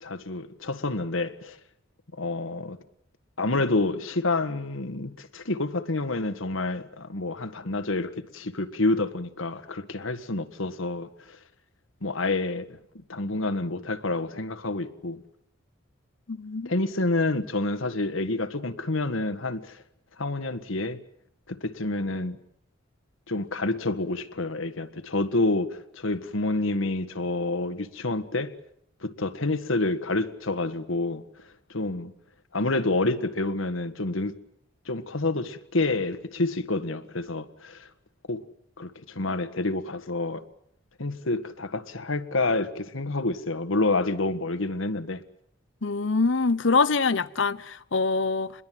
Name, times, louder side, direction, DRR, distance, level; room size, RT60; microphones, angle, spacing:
voice 1, 0.0-1.6 2.2-2.8 3.4-11.4 12.0-12.8 13.1-15.2 16.7-19.8 20.2-21.0 21.5-22.4 23.3-28.5 29.0-31.2 31.7-32.1 32.5-34.3 34.9-37.9 38.3-38.4 38.8-40.4 41.0-45.2, left 2 dB, 85° left, 1.7 m, -28 dB
voice 2, 16.3-16.7 45.8-48.5, left 4 dB, 70° left, 0.9 m, -24 dB
28.0 x 21.5 x 7.7 m
head